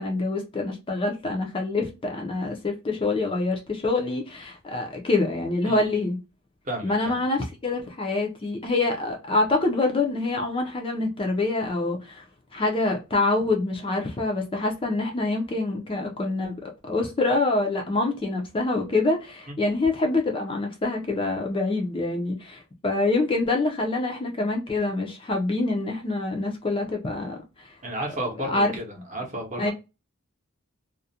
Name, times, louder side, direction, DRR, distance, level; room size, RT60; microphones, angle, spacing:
voice 1, 0.0-6.2 6.8-12.2 12.5-27.7 28.4-28.7 29.6-29.7, left 2 dB, 25° left, 0.4 m, -26 dB
voice 2, 5.7-6.0 6.6-7.2 19.5-19.6 27.8-29.7, right 1 dB, 35° right, 0.7 m, -33 dB
2.3 x 2.0 x 2.6 m
head